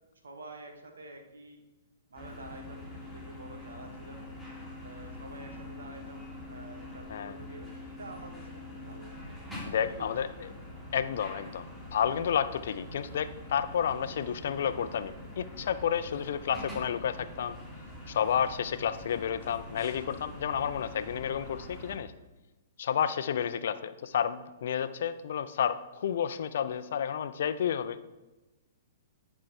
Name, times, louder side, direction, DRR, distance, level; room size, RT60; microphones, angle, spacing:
voice 1, 0.2-1.6 2.1-4.3 4.8-9.4 9.9-10.4, right 2 dB, 85° right, 4 dB, 1.4 m, -48 dB
sound 1, 2.1-22.0, left 1 dB, 5° right, 2.9 m, -44 dB
voice 2, 9.7-10.3 10.9-11.6 11.9-17.6 18.1-22.1 22.8-28.0, left 8 dB, 65° left, 13 dB, 0.5 m, -31 dB
10.5 x 4.6 x 4.3 m, 1.1 s
hypercardioid pair, 120°, 0 cm